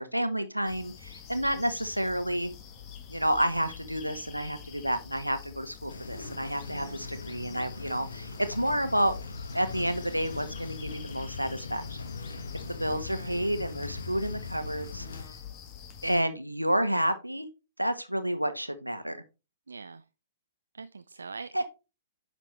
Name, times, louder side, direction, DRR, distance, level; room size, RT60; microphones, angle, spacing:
voice 1, 0.0-2.5 3.1-9.1 9.5-12.0 12.7-15.1 16.0-17.5 17.8-19.2 21.5-21.6, equal, 90° right, 1.2 m, -30 dB
sound 1, 0.6-16.2, left 8 dB, 30° left, 1.6 m, -47 dB
sound 2, 5.9-15.2, left 3 dB, 70° left, 1.4 m, -40 dB
voice 2, 6.3-7.0 13.1-13.4 19.7-20.0 20.7-21.6, right 4 dB, 70° right, 0.4 m, -44 dB
10.0 x 6.7 x 3.1 m
figure-of-eight pair, 115°, 0 cm